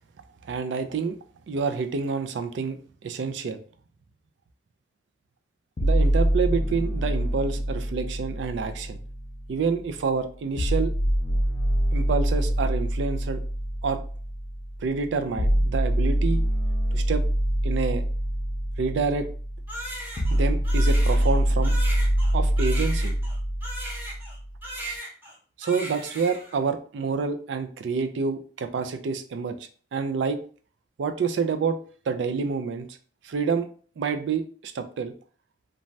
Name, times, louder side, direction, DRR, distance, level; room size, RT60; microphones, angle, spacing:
voice 1, 0.4-1.2 1.5-3.6 5.8-9.0 9.5-10.9 11.9-13.4 13.8-14.0 14.8-16.4 16.9-17.2 17.6-18.0 18.8-19.3 20.3-21.7 22.3-23.1 25.6-29.6 29.9-30.4 31.0-31.8 32.1-32.9 33.2-33.7 34.0-35.1, right 5 dB, 90° right, 9 dB, 0.4 m, -28 dB
sound 1, 5.8-9.8 10.6-24.6, equal, 35° left, 0.4 m, -25 dB
Crying sobbing, 19.7-24.4 24.6-25.4 25.6-26.6, right 1 dB, 10° right, 0.6 m, -37 dB
2.6 x 2.2 x 3.0 m, 0.43 s
head